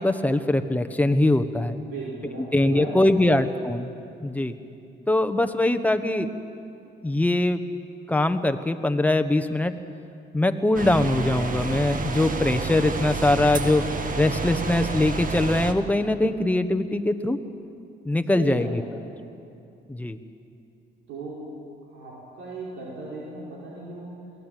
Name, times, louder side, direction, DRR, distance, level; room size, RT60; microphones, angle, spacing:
voice 1, 0.0-1.8 2.4-3.9 4.2-4.6 5.1-6.3 7.0-7.6 8.1-9.7 10.3-13.8 14.1-17.4 18.0-18.8 19.9-20.2, left 2 dB, 5° left, 8 dB, 1.3 m, -22 dB
voice 2, 1.8-2.9 18.3-19.0 21.1-21.4 21.9-24.2, right 3 dB, 90° right, -5 dB, 4.9 m, -36 dB
sound 1, 10.7-15.7, right 4 dB, 45° right, 1.9 m, -29 dB
22.5 x 17.5 x 9.2 m, 2.6 s
cardioid pair, 90°, 20 cm